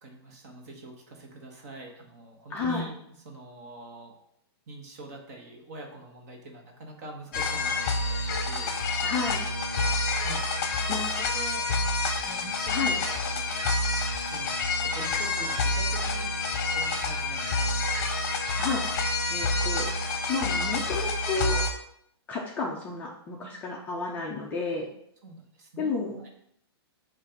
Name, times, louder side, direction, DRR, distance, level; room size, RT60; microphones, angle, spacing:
voice 1, 0.0-3.0 3.2-4.2 4.7-9.3 9.8-11.6 12.2-13.6 14.3-14.5 14.8-16.4 16.7-17.8 25.2-26.3, right 2 dB, 40° right, 2 dB, 1.3 m, -44 dB
voice 2, 2.5-2.8 9.0-9.5 10.9-11.0 12.7-13.0 18.6-18.8 19.3-19.9 20.3-21.6 22.3-24.9 25.8-26.2, left 4 dB, 10° left, -3 dB, 0.4 m, -31 dB
sound 1, 7.3-21.7, left 3 dB, 40° left, 0.8 m, -28 dB
7.2 x 2.5 x 5.1 m, 0.74 s
hypercardioid pair, 170°, 14 cm